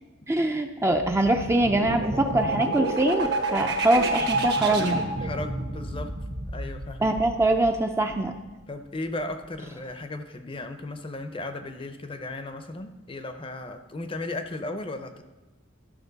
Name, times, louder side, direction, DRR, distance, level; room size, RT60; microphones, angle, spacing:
voice 1, 0.3-5.0 7.0-8.4, right 1 dB, 15° right, 5 dB, 0.5 m, -23 dB
sound 1, 0.9-8.5, right 2 dB, 55° right, 1.2 m, -30 dB
voice 2, 5.2-6.1 6.4-7.1 8.7-15.2, left 2 dB, 25° left, 8 dB, 0.6 m, -35 dB
12.5 x 6.1 x 4.0 m, 1.1 s
head